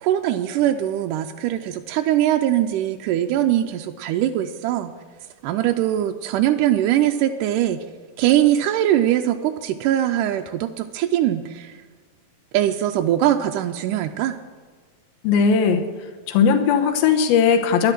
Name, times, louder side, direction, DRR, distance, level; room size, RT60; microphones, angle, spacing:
voice 1, 0.0-4.9 5.4-7.8 8.2-11.8 12.5-14.4, right 12 dB, 80° right, 5 dB, 1.9 m, -21 dB
voice 2, 15.2-15.8 16.3-17.9, left 6 dB, 90° left, 6 dB, 2.8 m, -18 dB
11.5 x 11.5 x 6.0 m, 1.5 s
omnidirectional pair, 4.1 m